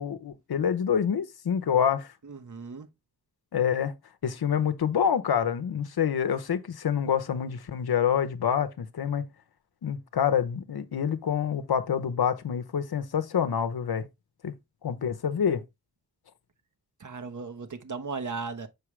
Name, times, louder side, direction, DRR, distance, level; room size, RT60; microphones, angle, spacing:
voice 1, 0.0-2.1 3.5-3.9 4.2-9.3 9.8-14.1 14.4-14.5 14.8-15.6, left 8 dB, 75° left, 0.8 m, -27 dB
voice 2, 2.2-2.9 17.0-18.7, right 4 dB, 50° right, 1.0 m, -36 dB
6.7 x 4.8 x 3.2 m
wide cardioid pair, 70°, 37 cm